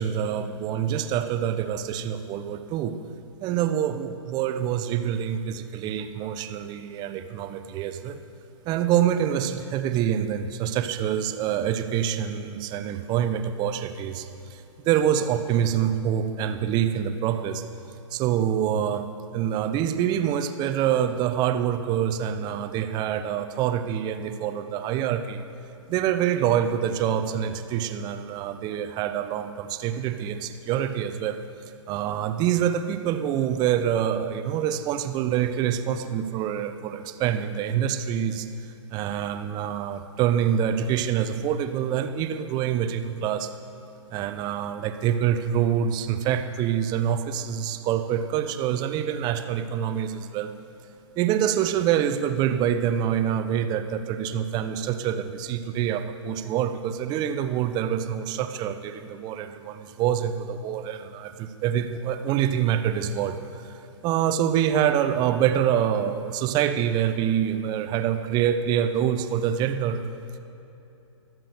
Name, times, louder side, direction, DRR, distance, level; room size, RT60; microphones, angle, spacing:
voice 1, 0.0-3.0 3.4-8.2 8.7-17.6 18.1-19.1 19.3-25.4 25.9-31.4 31.9-38.5 38.9-43.5 44.1-50.5 51.2-63.8 64.0-70.0, right 9 dB, 25° right, 8 dB, 0.9 m, -26 dB
22.0 x 7.7 x 6.5 m, 2.9 s
figure-of-eight pair, 120°, 16 cm